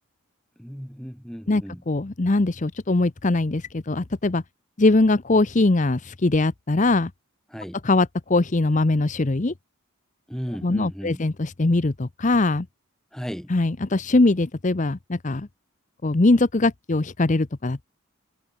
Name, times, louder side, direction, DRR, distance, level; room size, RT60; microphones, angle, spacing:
voice 1, 0.6-1.8 7.5-7.8 10.3-11.2 13.1-13.5, equal, ahead, 4.1 m, -35 dB
voice 2, 1.5-4.4 4.8-7.1 7.8-9.5 10.6-12.7 13.5-15.5 16.0-17.9, left 2 dB, 35° left, 0.7 m, -21 dB
head